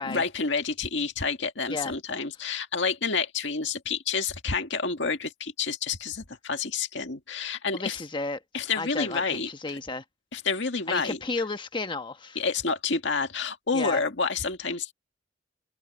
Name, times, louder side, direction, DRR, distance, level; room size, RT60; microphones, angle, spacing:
voice 1, 0.0-8.0 8.5-9.5 10.3-11.2 12.4-14.9, left 4 dB, 75° left, 2.0 m, -29 dB
voice 2, 7.7-8.4 8.7-10.0 10.9-12.4 13.7-14.0, left 3 dB, 25° left, 1.2 m, -33 dB
head